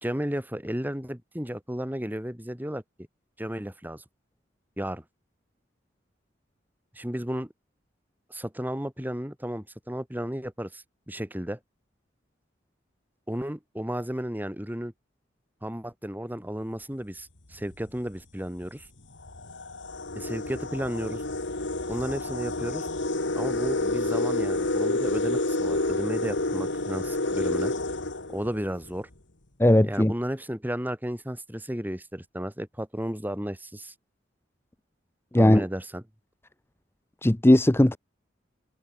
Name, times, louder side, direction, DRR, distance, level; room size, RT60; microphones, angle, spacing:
voice 1, 0.0-2.8 3.4-4.0 4.8-5.0 6.9-7.5 8.3-11.6 13.3-14.9 15.6-18.9 20.2-21.2 21.9-22.9 23.4-27.7 28.3-29.1 29.8-33.9 35.3-36.0, equal, 10° right, 2.9 m, -33 dB
sound 1, 17.5-17.8 18.6-18.7 19.2-28.9, left 2 dB, 70° left, 2.4 m, -29 dB
voice 2, 29.6-30.1 35.3-35.6 37.2-38.0, left 1 dB, 15° left, 0.7 m, -18 dB
head